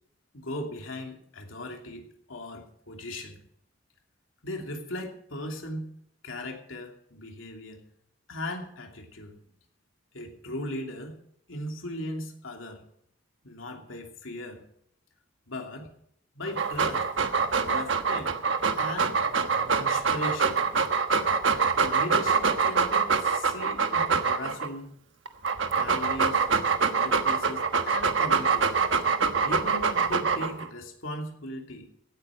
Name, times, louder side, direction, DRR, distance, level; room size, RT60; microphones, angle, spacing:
voice 1, 0.3-3.4 4.4-5.9 6.2-7.8 8.3-9.4 10.1-11.2 11.5-12.8 13.4-14.7 15.5-15.9 16.3-17.1 17.6-18.3 18.8-19.2 19.8-20.7 21.8-24.9 25.7-26.5 26.8-28.8 29.0-29.2 29.4-31.9, left 1 dB, 85° left, 2 dB, 2.9 m, -38 dB
Dog, 16.5-24.7 25.3-30.7, right 5 dB, 70° right, 1.3 m, -25 dB
17.0 x 8.9 x 6.4 m, 0.69 s
head